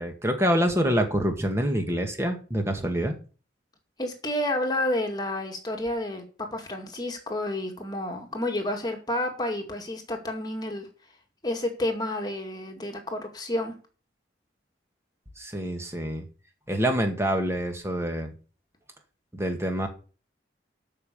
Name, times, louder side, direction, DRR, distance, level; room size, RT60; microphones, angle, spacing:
voice 1, 0.0-3.1 15.4-16.2 16.7-18.3 19.3-19.9, equal, 15° right, 4 dB, 1.8 m, -26 dB
voice 2, 4.0-6.2 6.5-10.9 11.4-13.7, left 1 dB, 20° left, 3 dB, 2.1 m, -30 dB
12.5 x 5.6 x 6.8 m, 0.37 s
head